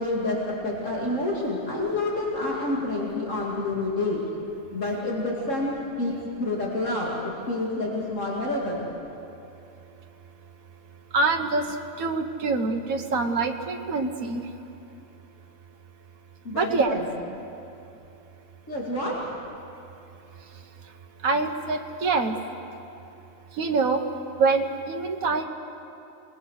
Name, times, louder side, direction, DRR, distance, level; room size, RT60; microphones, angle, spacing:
voice 1, 0.0-4.2 4.7-8.9 16.4-17.1 18.7-19.2, left 2 dB, 65° left, -4 dB, 2.9 m, -28 dB
voice 2, 11.1-11.6 12.0-14.4 16.5-17.0 21.2-22.3 23.6-24.0 24.4-25.4, right 4 dB, 90° right, 3 dB, 1.7 m, -25 dB
28.5 x 20.5 x 6.4 m, 2.8 s
omnidirectional pair, 1.4 m